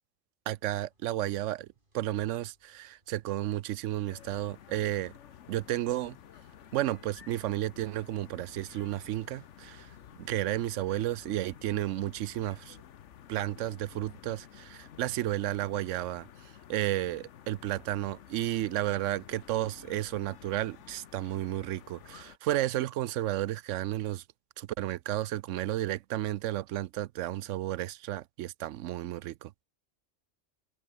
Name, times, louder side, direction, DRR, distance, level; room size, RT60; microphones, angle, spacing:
sound 1, 0.5-11.4, right 1 dB, 40° right, 5.6 m, -70 dB
voice 1, 0.5-1.7 1.9-5.1 5.5-6.2 6.7-9.9 10.2-12.8 13.3-16.3 16.7-24.2 24.6-29.5, right 14 dB, 80° right, 0.9 m, -32 dB
sound 2, 4.1-22.4, left 9 dB, 75° left, 1.2 m, -52 dB
omnidirectional pair, 1.3 m